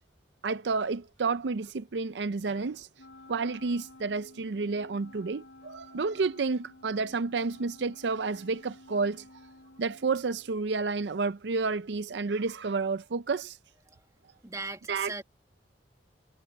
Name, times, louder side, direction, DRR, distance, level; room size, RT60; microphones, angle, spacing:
voice 1, 0.4-2.9 3.3-9.2 9.8-13.6 14.9-15.1, right 4 dB, 75° right, 0.5 m, -30 dB
Wind instrument woodwind instrument, 3.0-10.6, left 1 dB, 90° left, 5.1 m, -53 dB
voice 2, 14.4-15.2, right 3 dB, 20° right, 1.7 m, -38 dB
head